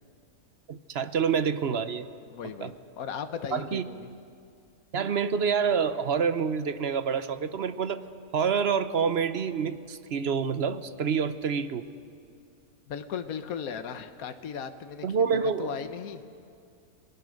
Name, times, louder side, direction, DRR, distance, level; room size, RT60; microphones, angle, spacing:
voice 1, 0.7-2.1 2.6-2.7 3.5-3.8 4.9-8.0 8.3-11.9 15.0-15.7, right 6 dB, 50° right, 12 dB, 0.9 m, -27 dB
voice 2, 2.3-4.1 12.9-15.1 15.3-16.2, left 7 dB, 65° left, 9 dB, 1.5 m, -37 dB
29.0 x 20.0 x 6.5 m, 2.4 s
omnidirectional pair, 1.6 m